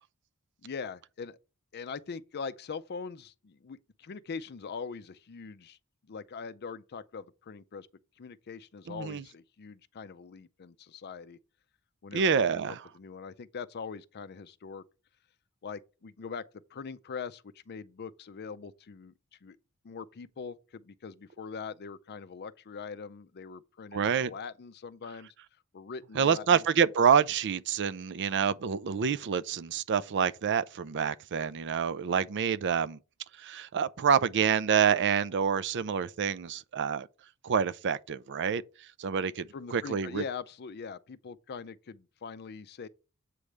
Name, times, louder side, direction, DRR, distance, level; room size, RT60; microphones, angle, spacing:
voice 1, 0.6-1.4 1.7-5.8 6.0-7.9 8.2-11.4 12.0-14.8 15.6-16.4 16.7-19.1 19.4-19.6 19.8-25.3 25.7-26.6 39.5-42.9, left 5 dB, 50° left, 0.5 m, -42 dB
voice 2, 8.9-9.2 12.1-12.8 23.9-24.3 26.2-33.0 33.4-37.1 37.4-38.6 39.0-40.2, right 7 dB, 55° right, 0.4 m, -27 dB
8.4 x 3.3 x 6.3 m
head